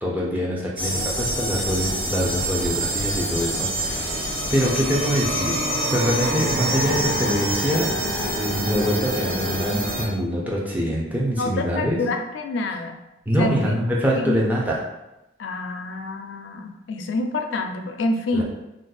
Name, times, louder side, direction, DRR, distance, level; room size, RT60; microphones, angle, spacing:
voice 1, 0.0-5.6 5.9-7.9 8.3-12.0 13.3-14.8 18.3-18.4, equal, 10° right, -4 dB, 0.5 m, -24 dB
sound 1, 0.8-10.0, equal, 45° right, 0.9 m, -26 dB
voice 2, 11.4-13.0 13.4-13.8 14.2-14.4 15.4-18.4, left 2 dB, 75° left, 5 dB, 0.4 m, -27 dB
2.5 x 2.3 x 3.8 m, 0.93 s
head